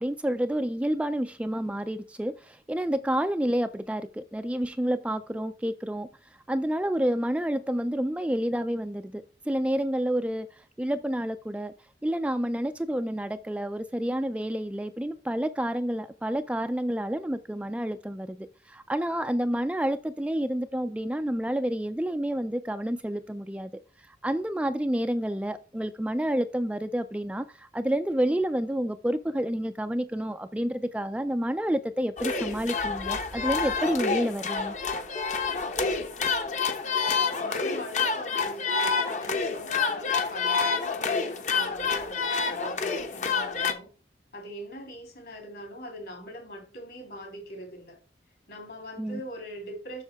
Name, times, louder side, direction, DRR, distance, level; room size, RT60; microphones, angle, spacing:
voice 1, 0.0-6.1 6.5-10.5 10.8-11.7 12.0-23.7 24.2-34.8 49.0-49.2, right 1 dB, 5° right, 0.3 m, -29 dB
sound 1, 32.2-43.7, left 5 dB, 45° left, 1.0 m, -28 dB
voice 2, 36.8-43.9 44.3-48.0 48.5-50.0, equal, 60° left, 3.6 m, -42 dB
7.4 x 6.4 x 3.5 m
head